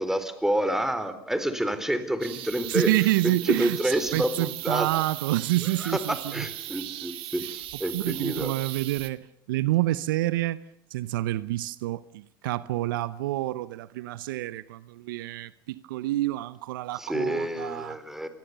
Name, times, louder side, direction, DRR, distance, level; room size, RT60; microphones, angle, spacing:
voice 1, 0.0-2.9 3.2-4.9 5.8-8.5 17.0-18.3, right 1 dB, 5° right, 4.1 m, -28 dB
sound 1, 2.2-9.1, right 15 dB, 55° right, 2.4 m, -38 dB
voice 2, 2.7-6.5 7.9-10.6 10.9-18.0, right 16 dB, 70° right, 0.9 m, -28 dB
27.5 x 21.5 x 6.9 m
hypercardioid pair, 80°, 11 cm